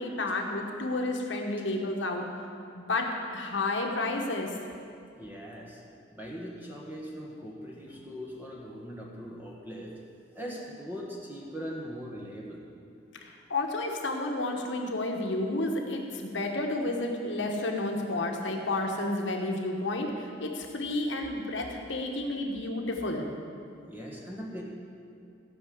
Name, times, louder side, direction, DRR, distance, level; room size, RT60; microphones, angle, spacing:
voice 1, 0.0-2.2 2.7-4.5 13.2-23.3, left 2 dB, 70° left, 2 dB, 1.3 m, -31 dB
voice 2, 5.2-5.8 6.1-10.0 10.4-12.6 23.9-24.6, equal, 10° right, -3 dB, 1.7 m, -40 dB
15.5 x 5.8 x 7.9 m, 2.4 s
head